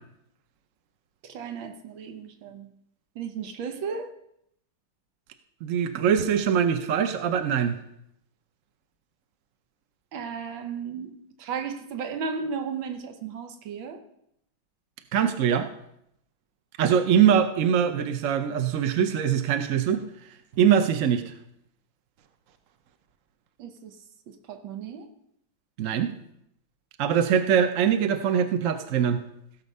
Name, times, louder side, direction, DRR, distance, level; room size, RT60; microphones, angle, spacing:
voice 1, 1.2-2.7 3.2-4.1 10.1-11.1 11.4-14.0 23.6-24.0 24.3-25.1, right 6 dB, 90° right, 6 dB, 1.7 m, -34 dB
voice 2, 5.6-7.8 15.1-15.7 16.8-20.0 20.6-21.3 25.8-26.1 27.0-29.2, right 8 dB, 60° right, 8 dB, 0.8 m, -22 dB
16.5 x 6.8 x 5.4 m, 0.76 s
omnidirectional pair, 2.1 m